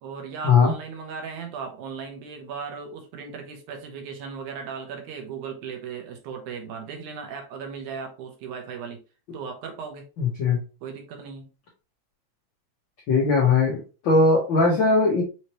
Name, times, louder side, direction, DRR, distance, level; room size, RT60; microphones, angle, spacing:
voice 1, 0.0-9.0 9.3-10.1 10.8-11.5, right 6 dB, 85° right, 2.4 m, -37 dB
voice 2, 10.2-10.6 13.1-15.2, left 4 dB, 75° left, 1.1 m, -19 dB
5.6 x 3.1 x 2.8 m
omnidirectional pair, 3.4 m